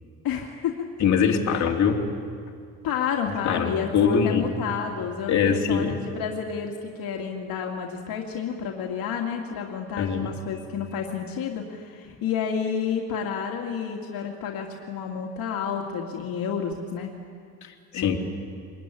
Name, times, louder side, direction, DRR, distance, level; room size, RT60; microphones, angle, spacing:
voice 1, 0.2-0.9 1.5-1.7 2.8-17.1 17.9-18.2, left 7 dB, 65° left, 1 dB, 2.5 m, -30 dB
voice 2, 1.0-2.0 3.4-4.6 5.3-5.9 10.0-10.3 17.6-18.2, left 6 dB, 50° left, 1 dB, 3.0 m, -23 dB
25.0 x 21.0 x 9.9 m, 2.2 s
cardioid pair, 145°, 37 cm